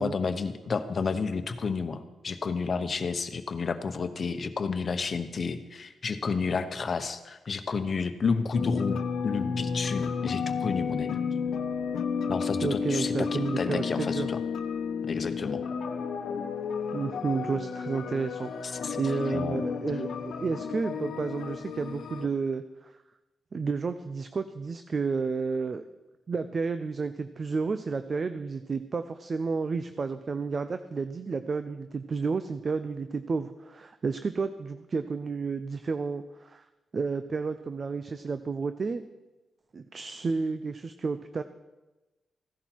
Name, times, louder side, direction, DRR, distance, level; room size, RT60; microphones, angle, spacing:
voice 1, 0.0-11.2 12.3-14.4 15.1-15.6 18.6-19.0 19.3-19.6, left 5 dB, 45° left, 9 dB, 1.0 m, -31 dB
sound 1, 8.5-22.3, left 6 dB, 80° left, 1.0 m, -32 dB
voice 2, 12.6-14.3 16.9-22.9 23.5-25.8 26.3-36.6 36.9-39.0 39.7-41.4, right 4 dB, 45° right, 10 dB, 0.6 m, -31 dB
15.5 x 11.5 x 4.6 m, 1.1 s
cardioid pair, 90°, 0 cm